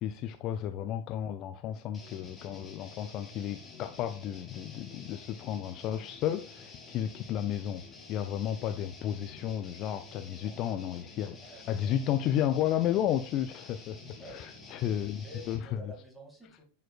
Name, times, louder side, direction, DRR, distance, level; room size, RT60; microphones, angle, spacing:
voice 1, 0.0-7.8 8.1-11.4 11.7-15.8, left 10 dB, 35° left, 0.4 m, -33 dB
sound 1, 1.9-15.7, left 3 dB, 15° left, 2.1 m, -50 dB
voice 2, 10.1-10.6 11.4-11.9 14.2-14.5 14.8-16.6, equal, ahead, 2.3 m, -51 dB
10.0 x 4.4 x 2.4 m
figure-of-eight pair, 90°, 0 cm